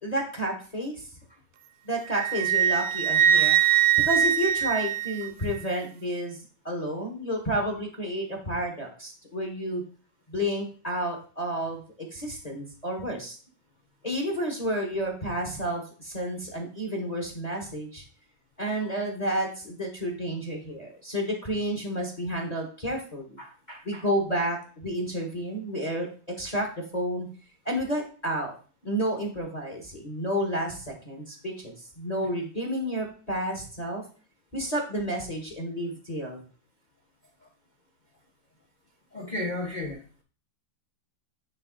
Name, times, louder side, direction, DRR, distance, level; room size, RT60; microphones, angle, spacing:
voice 1, 0.0-1.0 1.8-3.5 4.0-6.4 6.6-9.8 10.3-13.4 14.0-18.0 18.6-23.4 23.8-27.3 27.6-28.5 28.8-34.0 34.5-36.4, equal, 25° left, 1 dB, 1.3 m, -31 dB
Wind instrument woodwind instrument, 2.1-5.6, right 10 dB, 70° right, 1.1 m, -22 dB
voice 2, 23.4-24.0 39.1-40.0, left 2 dB, 45° left, 0 dB, 0.6 m, -34 dB
9.4 x 3.6 x 3.9 m, 0.39 s
omnidirectional pair, 2.1 m